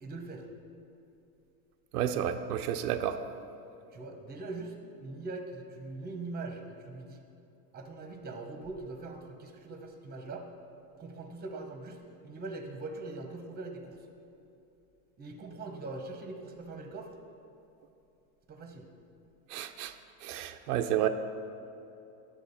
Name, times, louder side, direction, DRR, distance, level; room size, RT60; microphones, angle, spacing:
voice 1, 0.0-0.5 3.9-7.2 7.7-10.5 11.0-14.1 15.2-17.2 18.5-18.9, right 3 dB, 20° right, 4 dB, 1.1 m, -42 dB
voice 2, 1.9-3.2 19.5-19.9 20.2-21.1, right 10 dB, 85° right, 7 dB, 0.6 m, -31 dB
10.5 x 7.3 x 4.2 m, 2.8 s
supercardioid pair, 120°, 46 cm